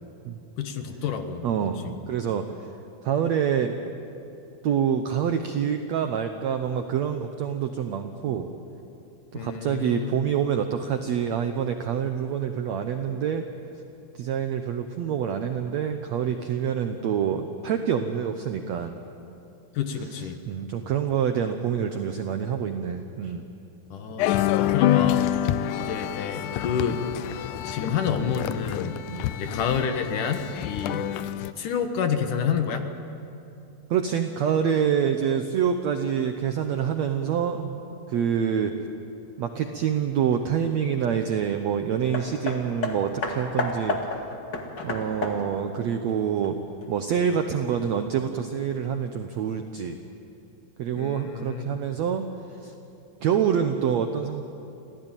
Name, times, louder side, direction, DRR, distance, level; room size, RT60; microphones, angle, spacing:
voice 1, 0.6-1.5 1.8-1.9 9.3-10.3 19.7-20.4 23.9-25.4 25.8-27.0 27.6-29.0 29.4-31.1 31.4-32.9 51.0-51.8, left 7 dB, 65° left, 6 dB, 2.6 m, -28 dB
voice 2, 1.4-2.5 3.0-3.8 4.6-8.5 9.3-13.4 14.1-19.0 20.1-23.4 29.1-29.2 30.8-31.0 33.9-37.8 38.1-38.7 39.4-44.0 44.8-46.6 46.9-50.0 50.8-52.7 53.2-54.5, right 8 dB, 75° right, 6 dB, 1.6 m, -26 dB
sound 1, 24.2-31.5, left 12 dB, 85° left, 1.8 m, -27 dB
Hammer, 42.1-46.9 47.7-47.8, left 3 dB, 35° left, 2.0 m, -32 dB
26.5 x 16.5 x 9.0 m, 2.8 s
omnidirectional pair, 4.3 m